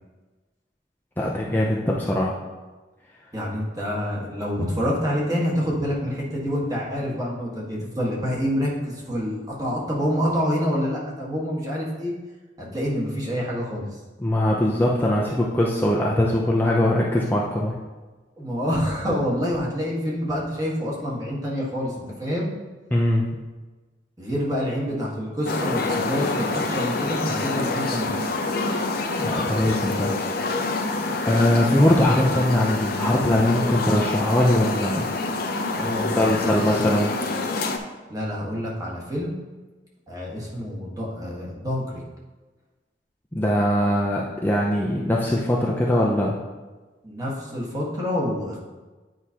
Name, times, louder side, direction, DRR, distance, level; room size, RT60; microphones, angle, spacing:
voice 1, 1.2-2.3 14.2-17.8 22.9-23.3 29.2-30.1 31.2-35.1 36.2-37.1 43.3-46.4, left 1 dB, 10° left, -4 dB, 0.5 m, -21 dB
voice 2, 3.3-12.1 12.6-14.0 18.4-22.5 24.2-28.1 35.7-36.5 38.1-39.4 40.1-42.0 47.0-48.6, equal, 20° right, -4 dB, 1.4 m, -27 dB
sound 1, 25.5-37.8, left 3 dB, 55° left, 0.6 m, -27 dB
9.3 x 4.8 x 2.8 m, 1.2 s
head